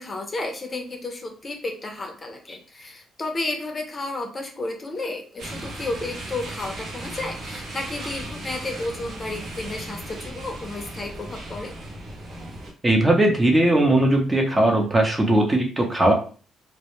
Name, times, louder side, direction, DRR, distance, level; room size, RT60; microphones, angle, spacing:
voice 1, 0.0-11.7, left 2 dB, 30° left, 3 dB, 0.5 m, -32 dB
sound 1, 5.4-12.7, right 1 dB, 60° right, 0.7 m, -36 dB
voice 2, 12.8-16.1, right 1 dB, 20° right, 1 dB, 0.6 m, -19 dB
2.1 x 2.1 x 2.9 m, 0.39 s
cardioid pair, 90°, 0 cm